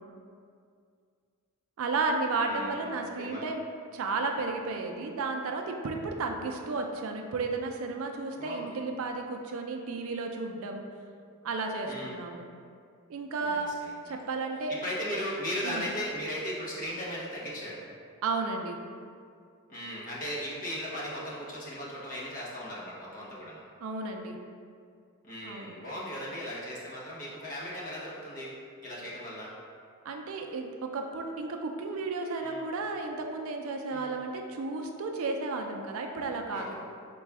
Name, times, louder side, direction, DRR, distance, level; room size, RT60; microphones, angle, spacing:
voice 1, 1.8-3.6 3.9-10.9 11.4-12.5 13.1-13.7 14.1-14.8 15.6-15.9 18.2-18.8 23.8-24.4 25.4-25.8 30.0-36.7, right 3 dB, 65° right, 3 dB, 0.4 m, -33 dB
voice 2, 2.4-3.5 8.3-8.7 11.8-12.2 13.4-14.1 14.7-17.8 19.7-23.6 25.2-28.6 28.8-29.5 32.4-32.6 33.9-34.1 36.5-36.8, equal, 40° left, -6 dB, 1.0 m, -37 dB
4.0 x 2.3 x 4.6 m, 2.2 s
head